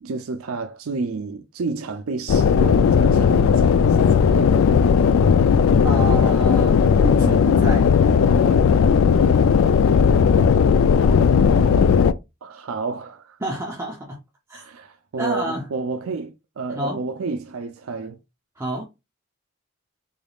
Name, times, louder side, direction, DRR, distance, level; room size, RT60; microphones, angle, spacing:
voice 1, 0.0-4.8 12.4-13.4 14.5-18.2, right 4 dB, 75° right, 0.5 m, -31 dB
sound 1, 2.3-12.1, left 6 dB, 65° left, 0.3 m, -16 dB
voice 2, 5.8-7.9 13.4-14.2 14.5-14.6 15.2-15.6 16.7-17.0 18.6-18.8, right 1 dB, 10° right, 0.6 m, -29 dB
3.9 x 3.5 x 2.3 m
head